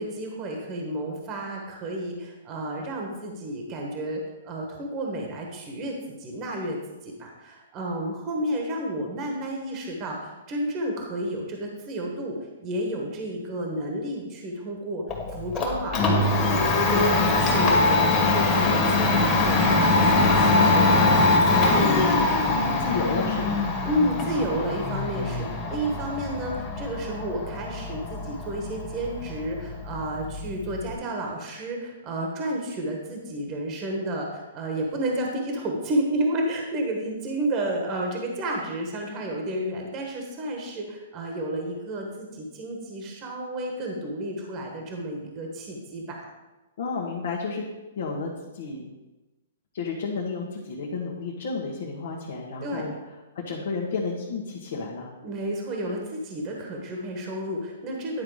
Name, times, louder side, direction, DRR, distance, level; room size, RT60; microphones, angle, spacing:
voice 1, 0.0-6.8 7.0-12.3 12.6-15.0 15.3-22.2 23.8-46.3 52.6-52.8 55.2-58.2, right 1 dB, 30° right, 1 dB, 1.3 m, -31 dB
Domestic sounds home sounds, 15.1-30.9, left 2 dB, 25° left, 1.8 m, -23 dB
voice 2, 21.6-23.7 46.8-47.6 48.0-48.9 49.7-52.9 53.3-55.1, left 4 dB, 65° left, -3 dB, 1.4 m, -31 dB
10.5 x 4.0 x 4.9 m, 1.1 s
hypercardioid pair, 145°, 0 cm